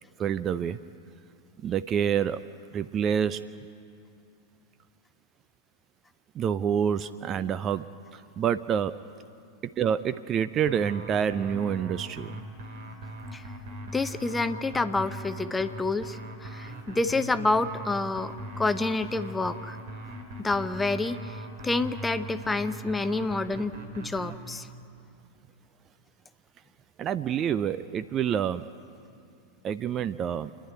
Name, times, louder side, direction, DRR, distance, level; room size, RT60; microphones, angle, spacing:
voice 1, 0.2-0.8 1.6-2.4 2.7-3.4 6.4-7.8 8.4-8.9 9.8-12.3 27.0-28.6 29.6-30.5, right 8 dB, 30° right, 13 dB, 0.4 m, -27 dB
sound 1, 10.7-24.4, right 1 dB, 55° right, 3.0 m, -40 dB
voice 2, 13.9-19.8 20.4-21.4 21.6-24.7, left 3 dB, 10° left, 11 dB, 0.8 m, -28 dB
28.5 x 10.5 x 9.7 m, 2.5 s
figure-of-eight pair, 90°, 0 cm